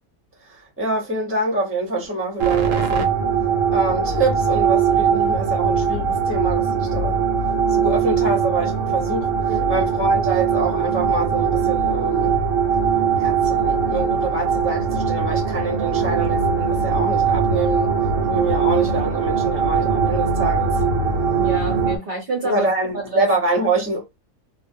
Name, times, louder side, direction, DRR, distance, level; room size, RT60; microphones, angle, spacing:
voice 1, 0.5-3.1 3.7-7.2 7.7-12.4 13.2-17.9 18.3-20.8 22.4-24.2, right 2 dB, 10° right, 0.7 m, -25 dB
sound 1, 2.4-22.0, right 6 dB, 65° right, 1.0 m, -21 dB
voice 2, 21.3-23.3, right 2 dB, 45° right, 0.8 m, -28 dB
2.4 x 2.3 x 2.6 m
omnidirectional pair, 1.6 m